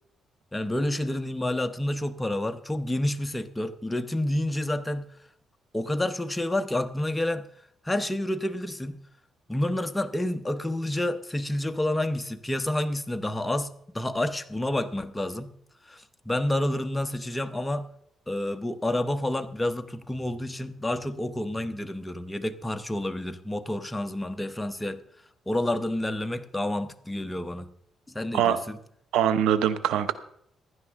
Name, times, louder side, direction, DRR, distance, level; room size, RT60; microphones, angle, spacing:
voice 1, 0.5-5.1 5.7-7.5 7.8-9.0 9.5-13.7 13.9-15.5 15.9-17.9 18.3-25.0 25.5-27.7 28.1-28.8, left 1 dB, 10° left, 9 dB, 0.9 m, -29 dB
voice 2, 29.1-30.1, right 9 dB, 90° right, 13 dB, 0.8 m, -23 dB
16.0 x 11.0 x 3.6 m, 0.68 s
cardioid pair, 90°, 0 cm